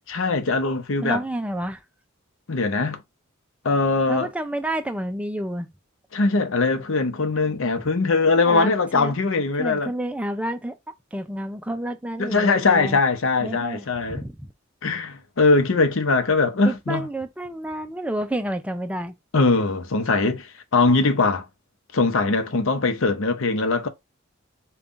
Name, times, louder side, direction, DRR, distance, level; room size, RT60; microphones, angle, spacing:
voice 1, 0.1-1.2 2.5-3.0 3.6-4.3 6.1-9.9 12.2-14.2 14.8-17.1 19.3-21.5 21.9-23.9, left 3 dB, 70° left, 0.7 m, -21 dB
voice 2, 1.0-1.8 4.1-5.7 7.4-7.6 8.5-9.1 9.6-10.7 11.1-13.0 13.4-14.5 16.6-19.2, right 1 dB, 5° right, 0.4 m, -30 dB
5.3 x 2.3 x 2.5 m
head